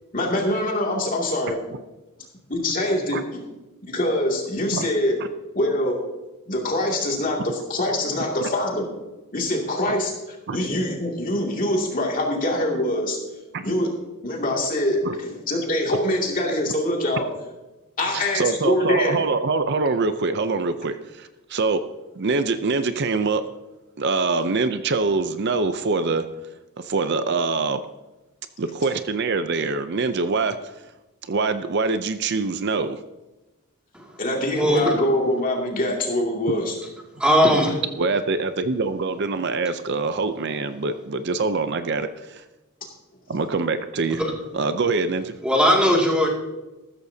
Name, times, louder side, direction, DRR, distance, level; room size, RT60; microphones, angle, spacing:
voice 1, 0.1-1.6 2.5-3.4 3.9-5.2 5.5-6.0 6.5-8.9 9.3-10.1 10.5-13.2 13.6-13.9 14.2-17.3 18.0-19.2 34.2-36.7, left 1 dB, 40° left, -1 dB, 2.4 m, -24 dB
voice 2, 18.1-21.8 22.2-23.4 24.0-26.3 26.8-27.8 28.6-30.6 31.3-33.0 38.0-42.4 43.3-44.2 44.5-45.3, right 3 dB, 50° right, 10 dB, 0.5 m, -24 dB
voice 3, 37.2-37.8 44.2-44.3 45.4-46.3, equal, 5° right, -2 dB, 2.3 m, -18 dB
14.0 x 13.5 x 2.8 m, 1.1 s
head